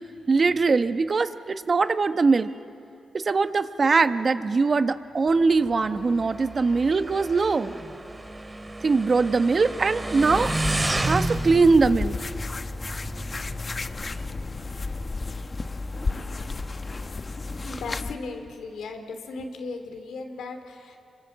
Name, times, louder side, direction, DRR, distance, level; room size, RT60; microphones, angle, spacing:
voice 1, 0.3-2.5 3.1-7.7 8.8-10.5 11.0-12.2, right 4 dB, 50° right, 10 dB, 1.2 m, -21 dB
Motorcycle, 5.3-13.6, right 2 dB, 25° right, 2.5 m, -32 dB
sound 1, 10.2-18.1, left 3 dB, 40° left, 1.1 m, -32 dB
voice 2, 17.6-21.0, left 3 dB, 80° left, 5 dB, 3.0 m, -36 dB
27.0 x 25.0 x 7.5 m, 2.6 s
supercardioid pair, 40°, 0 cm